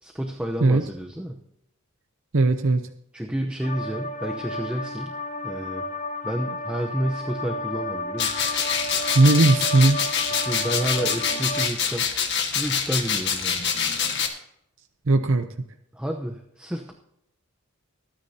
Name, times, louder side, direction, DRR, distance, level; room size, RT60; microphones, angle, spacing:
voice 1, 0.0-1.4 3.1-5.1 5.4-5.8 6.2-8.4 10.3-12.1 12.5-13.6 15.9-16.9, right 1 dB, 5° right, 2 dB, 0.8 m, -30 dB
voice 2, 2.3-2.9 9.1-10.0 15.1-15.5, right 2 dB, 60° right, 7 dB, 0.7 m, -18 dB
sound 1, 3.6-11.7, left 1 dB, 35° left, 0.7 m, -32 dB
sound 2, 8.2-14.3, left 7 dB, 50° left, 1.7 m, -26 dB
24.0 x 9.8 x 2.8 m, 0.77 s
head